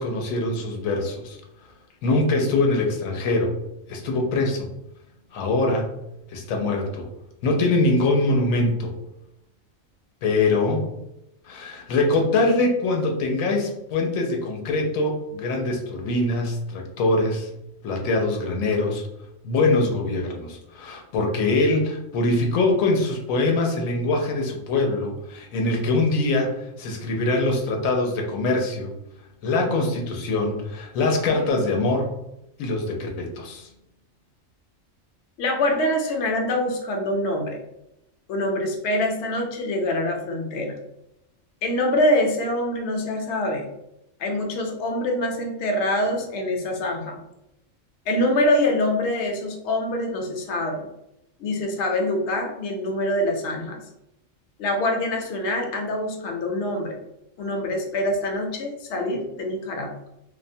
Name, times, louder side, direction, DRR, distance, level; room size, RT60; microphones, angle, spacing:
voice 1, 0.0-1.4 2.0-3.5 3.9-4.7 5.3-5.9 6.3-7.1 7.4-8.9 10.2-10.8 11.4-17.5 17.8-19.0 19.4-28.9 29.4-32.1 32.6-33.7, left 2 dB, 90° left, 2 dB, 1.0 m, -23 dB
voice 2, 35.4-37.6 38.3-40.8 41.6-43.7 44.2-47.2 48.1-50.9 51.4-53.8 54.6-57.0 57.4-59.9, left 1 dB, 65° left, 2 dB, 0.8 m, -25 dB
2.5 x 2.0 x 2.6 m, 0.86 s
omnidirectional pair, 1.4 m